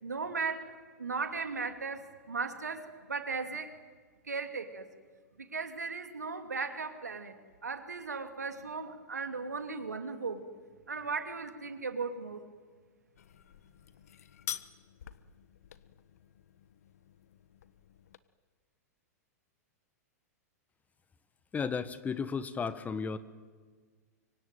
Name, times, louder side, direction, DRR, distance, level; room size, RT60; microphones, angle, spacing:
voice 1, 0.0-0.7 1.0-3.7 4.3-4.9 5.4-7.3 7.6-10.5 10.9-12.4, right 4 dB, 85° right, 7 dB, 2.7 m, -37 dB
sound 1, 13.2-18.2, left 10 dB, 65° left, 1.2 m, -47 dB
voice 2, 21.5-23.2, left 5 dB, 20° left, 14 dB, 1.4 m, -34 dB
24.5 x 24.5 x 9.3 m, 1.5 s
figure-of-eight pair, 100°, 9 cm